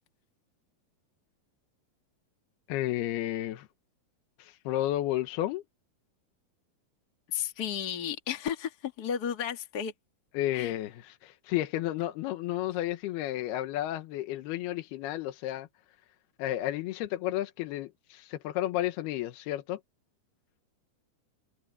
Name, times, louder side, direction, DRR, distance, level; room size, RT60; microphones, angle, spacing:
voice 1, 2.7-3.7 4.4-5.6 10.3-15.7 16.4-19.8, left 14 dB, 85° left, 3.1 m, -32 dB
voice 2, 7.3-9.9 10.5-10.7, left 8 dB, 40° left, 1.5 m, -33 dB
omnidirectional pair, 4.4 m